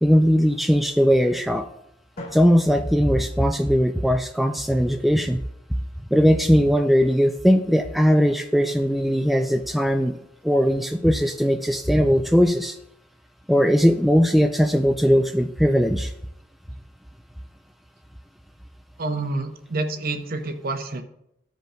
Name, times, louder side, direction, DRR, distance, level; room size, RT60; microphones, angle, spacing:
voice 1, 0.0-1.7 2.3-5.4 6.1-10.2 10.4-12.8 13.5-16.1, equal, ahead, 5 dB, 0.3 m, -19 dB
Drum, 2.2-4.1, left 1 dB, 50° left, 2.3 m, -43 dB
voice 2, 19.0-21.0, right 2 dB, 50° right, 7 dB, 0.8 m, -28 dB
14.5 x 5.2 x 2.2 m, 0.80 s
head